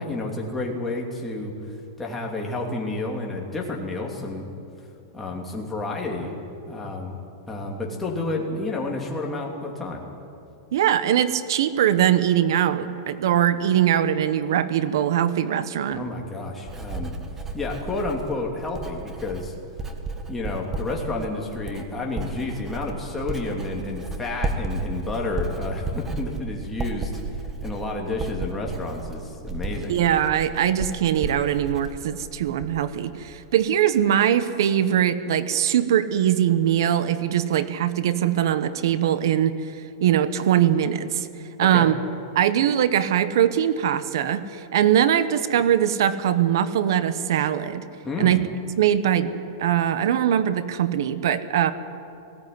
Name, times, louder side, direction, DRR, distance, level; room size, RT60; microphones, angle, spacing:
voice 1, 0.0-1.5 2.0-4.5 5.1-6.3 6.7-7.2 7.5-10.0 15.9-17.1 17.5-19.5 20.3-27.1 27.6-29.9 41.6-41.9 48.0-48.4, left 2 dB, 10° left, -1 dB, 3.0 m, -30 dB
voice 2, 10.7-16.0 29.9-39.6 40.0-41.3 41.6-41.9 42.3-47.8 48.2-48.4 48.8-49.3 49.6-51.7, right 10 dB, 70° right, 13 dB, 1.1 m, -21 dB
Writing, 15.9-33.0 33.3-33.7, right 3 dB, 15° right, 1.7 m, -33 dB
18.5 x 17.0 x 9.6 m, 2.6 s
supercardioid pair, 150°, 2 cm